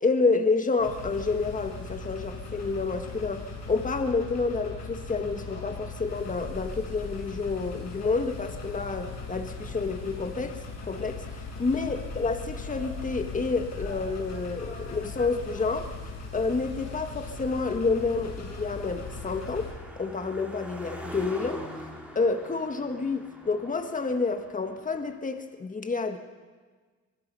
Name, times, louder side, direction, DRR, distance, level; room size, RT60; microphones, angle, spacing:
voice 1, 0.0-10.6 10.9-15.9 16.3-19.7 20.0-21.7 22.2-26.2, left 4 dB, 25° left, 6 dB, 1.7 m, -29 dB
sound 1, 0.8-19.7, left 3 dB, 60° left, 7.8 m, -39 dB
Car passing by, 14.5-25.2, equal, 5° right, 4.4 m, -45 dB
24.0 x 20.5 x 5.6 m, 1.4 s
cardioid pair, 90°, 30 cm